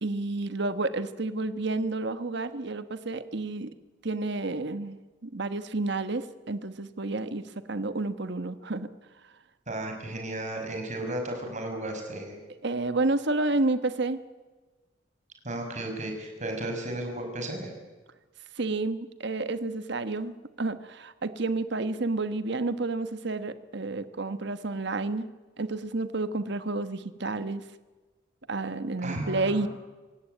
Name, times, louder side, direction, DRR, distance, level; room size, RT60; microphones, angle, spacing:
voice 1, 0.0-3.7 4.0-8.9 12.6-14.2 18.6-25.3 25.6-27.6 28.5-29.7, right 2 dB, 65° right, 11 dB, 1.3 m, -30 dB
voice 2, 9.7-12.4 15.4-17.7 29.0-29.7, right 1 dB, 40° right, 3 dB, 6.0 m, -34 dB
26.5 x 17.0 x 9.0 m, 1.3 s
head